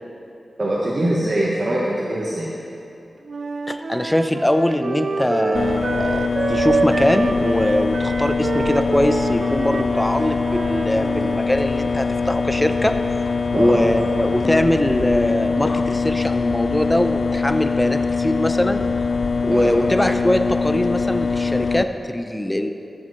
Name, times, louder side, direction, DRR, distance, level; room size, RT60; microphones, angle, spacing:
voice 1, 0.6-2.5 13.5-13.8 19.5-19.8, right 1 dB, 45° right, -5 dB, 1.1 m, -22 dB
Wind instrument woodwind instrument, 3.3-11.4, right 4 dB, 65° right, 0.3 m, -27 dB
voice 2, 3.7-12.9 13.5-18.9 19.4-22.7, left 1 dB, 15° left, 8 dB, 0.5 m, -22 dB
sound 1, 5.5-21.8, left 4 dB, 65° left, 0.4 m, -23 dB
14.0 x 7.6 x 3.1 m, 2.8 s
cardioid pair, 55°, 0 cm